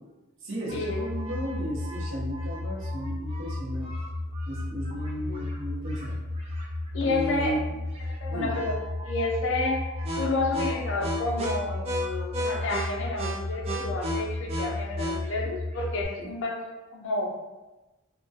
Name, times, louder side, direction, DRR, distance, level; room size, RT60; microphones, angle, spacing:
voice 1, 0.4-3.9 4.5-6.2 7.0-7.6 8.3-8.5 16.2-16.3, equal, 60° right, -4 dB, 0.6 m, -34 dB
sound 1, 0.7-16.0, left 1 dB, 30° right, 0.3 m, -32 dB
voice 2, 6.9-7.6 8.1-8.8 9.0-9.9 10.2-17.3, left 2 dB, 60° left, 1 dB, 0.4 m, -30 dB
2.2 x 2.1 x 2.6 m, 1.1 s
head